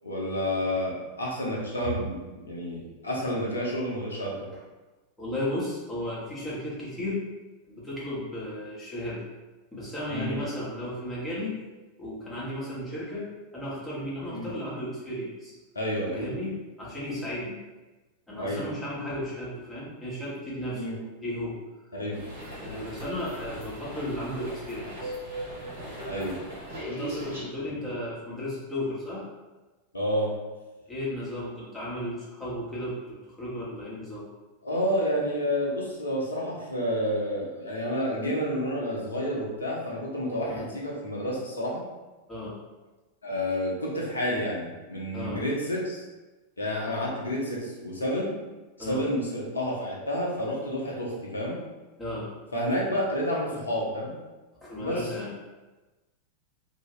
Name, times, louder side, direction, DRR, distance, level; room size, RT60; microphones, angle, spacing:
voice 1, 0.0-4.5 10.1-10.4 14.3-14.5 15.7-16.3 18.4-18.6 20.7-21.0 21.9-22.2 26.0-26.4 29.9-30.4 34.6-41.8 43.2-46.0 46.6-48.3 48.9-51.6 52.5-54.1 54.8-55.1, equal, 75° left, -3 dB, 0.8 m, -29 dB
voice 2, 5.2-7.2 7.6-9.2 9.7-11.6 12.0-15.5 16.1-17.6 18.3-21.6 22.6-25.2 26.8-29.3 30.9-34.3 40.5-40.7 42.3-42.6 45.1-45.4 48.8-49.0 52.0-52.3 54.6-55.3, left 1 dB, 10° left, -8 dB, 1.2 m, -34 dB
sound 1, 22.1-27.4, right 1 dB, 80° right, 1.3 m, -38 dB
2.8 x 2.8 x 2.9 m, 1.2 s
figure-of-eight pair, 90°, 0 cm